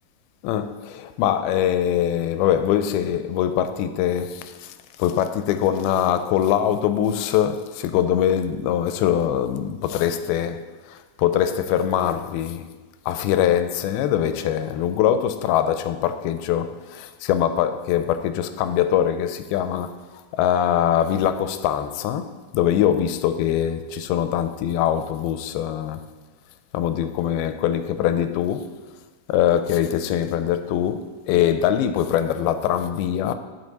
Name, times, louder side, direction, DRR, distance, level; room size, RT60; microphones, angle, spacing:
voice 1, 0.4-4.7 5.0-12.7 13.1-26.0 26.7-28.7 29.3-33.4, left 10 dB, 90° left, 2.4 m, -23 dB
11.0 x 5.9 x 4.1 m
omnidirectional pair, 4.3 m